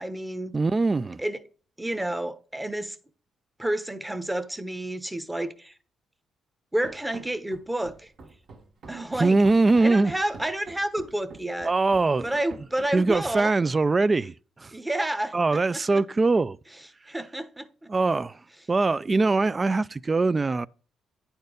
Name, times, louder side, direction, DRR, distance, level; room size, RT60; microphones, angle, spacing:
voice 1, 0.0-0.5 1.2-1.4 1.8-3.0 3.6-5.7 6.7-8.1 8.9-9.4 9.8-11.7 12.2-13.5 14.7-15.8 17.1-17.9, right 1 dB, 10° right, 0.9 m, -30 dB
voice 2, 0.5-1.2 9.2-10.1 11.6-12.3 12.9-14.7 15.3-16.6 17.9-18.4 18.7-20.7, right 3 dB, 25° right, 0.3 m, -22 dB
Run, 6.8-13.5, right 3 dB, 60° right, 1.3 m, -47 dB
9.4 x 4.4 x 5.0 m
cardioid pair, 90°, 0 cm